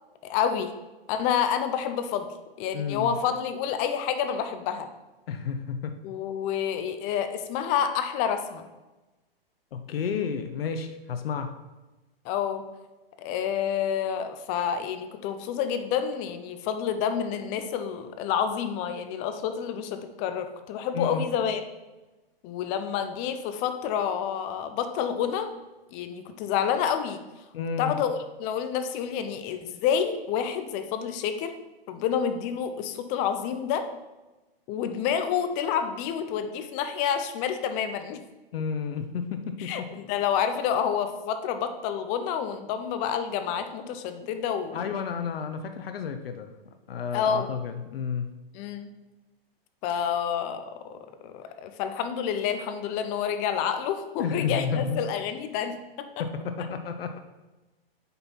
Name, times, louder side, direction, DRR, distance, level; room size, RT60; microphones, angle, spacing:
voice 1, 0.2-0.7 1.1-2.3 2.6-4.9 6.0-8.6 12.2-12.6 13.2-21.6 22.4-25.5 25.9-27.2 27.8-31.5 31.9-33.9 34.7-38.2 39.6-44.9 47.1-47.5 48.5-48.9 49.8-56.1, left 8 dB, 25° left, 8 dB, 0.5 m, -28 dB
voice 2, 2.7-3.1 5.3-5.9 9.7-11.5 20.9-21.2 27.5-28.0 38.5-39.7 44.7-46.5 46.9-48.3 54.2-55.0 56.2-57.2, left 6 dB, 75° left, 7 dB, 0.9 m, -31 dB
7.7 x 5.6 x 4.4 m, 1.1 s
hypercardioid pair, 140°, 30 cm